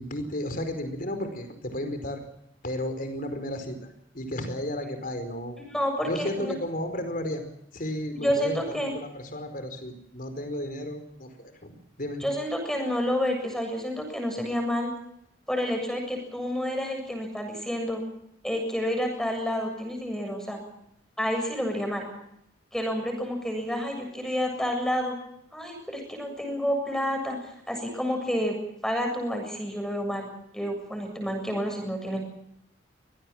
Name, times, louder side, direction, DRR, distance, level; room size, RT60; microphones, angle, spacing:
voice 1, 0.0-2.2 2.6-3.8 4.1-5.6 6.0-7.4 7.7-11.7 12.0-12.2, left 1 dB, 50° left, 7 dB, 4.8 m, -33 dB
voice 2, 5.6-6.5 8.1-8.9 12.2-14.9 15.5-18.0 18.4-20.6 21.2-22.1 22.7-25.2 25.5-27.4 27.7-28.5 28.8-30.3 30.5-32.2, equal, 5° left, 3 dB, 7.4 m, -29 dB
25.0 x 19.0 x 7.5 m, 0.77 s
head